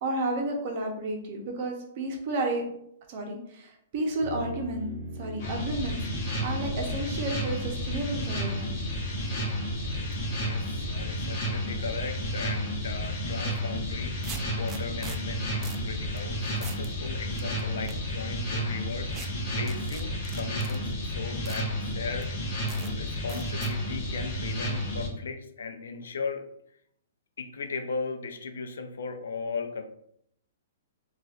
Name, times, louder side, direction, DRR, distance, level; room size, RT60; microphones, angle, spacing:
voice 1, 0.0-2.6 3.1-8.7, right 2 dB, 40° right, 2 dB, 0.8 m, -32 dB
sound 1, 4.2-21.9, equal, 80° right, 0.6 m, -42 dB
sound 2, 5.4-25.1, equal, 40° left, 1.1 m, -32 dB
voice 2, 10.4-22.3 22.9-26.4 27.4-29.8, left 4 dB, 90° left, 6 dB, 0.5 m, -37 dB
sound 3, 13.5-13.6 14.2-15.2 15.6-15.9 16.2-16.3 16.6-16.9 17.4-18.0 19.1-19.3 19.7-20.8 21.5-21.6 22.2-22.3 22.7-22.9 23.3-23.7, right 5 dB, 15° right, 0.3 m, -41 dB
4.1 x 2.4 x 2.4 m, 0.73 s
hypercardioid pair, 165°, 0 cm